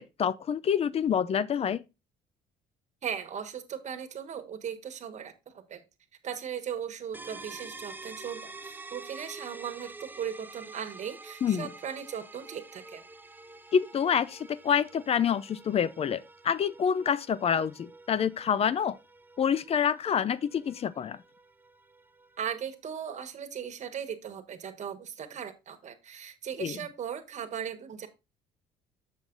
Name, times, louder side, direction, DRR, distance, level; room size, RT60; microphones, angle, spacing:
voice 1, 0.0-1.8 11.4-11.7 13.7-19.0 19.4-21.2 26.6-26.8, left 8 dB, 35° left, 0.5 m, -27 dB
voice 2, 3.0-5.8 6.2-13.0 22.4-28.1, right 8 dB, 45° right, 1.4 m, -38 dB
sound 1, 7.1-22.7, right 3 dB, 10° right, 0.5 m, -48 dB
7.3 x 5.9 x 3.8 m
cardioid pair, 110°, 17 cm